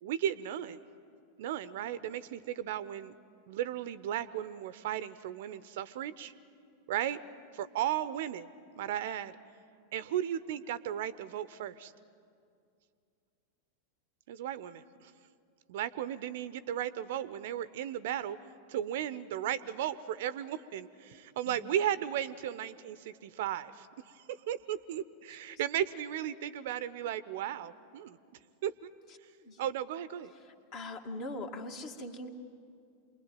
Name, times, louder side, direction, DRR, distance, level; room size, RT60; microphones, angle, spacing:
voice 1, 0.0-0.8 1.4-3.1 3.5-6.3 6.9-7.2 7.5-8.5 8.8-9.4 9.9-11.9 14.3-15.1 15.7-18.4 18.7-28.2 28.6-28.9 29.6-30.3, right 11 dB, 55° right, 16 dB, 0.7 m, -35 dB
voice 2, 30.5-32.3, left 2 dB, 40° left, 3 dB, 2.1 m, -41 dB
27.5 x 21.5 x 9.2 m, 2.3 s
figure-of-eight pair, 90°, 0 cm